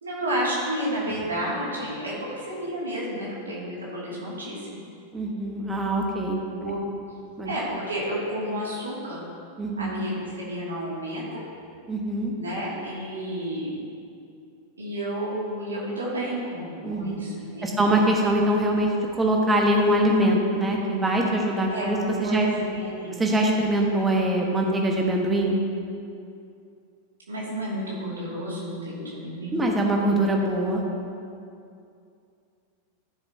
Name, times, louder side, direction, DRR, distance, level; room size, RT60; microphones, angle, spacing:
voice 1, 0.0-4.8 6.6-6.8 7.4-9.2 9.8-11.4 12.4-13.8 14.8-17.8 21.7-23.2 27.3-29.6, right 1 dB, 70° right, -6 dB, 2.4 m, -31 dB
voice 2, 5.1-6.8 7.4-7.5 9.6-10.0 11.9-12.3 16.8-17.2 17.6-22.5 23.2-25.6 29.5-30.8, right 1 dB, 15° right, 0 dB, 1.4 m, -23 dB
14.5 x 6.9 x 2.8 m, 2.5 s
figure-of-eight pair, 90°, 0 cm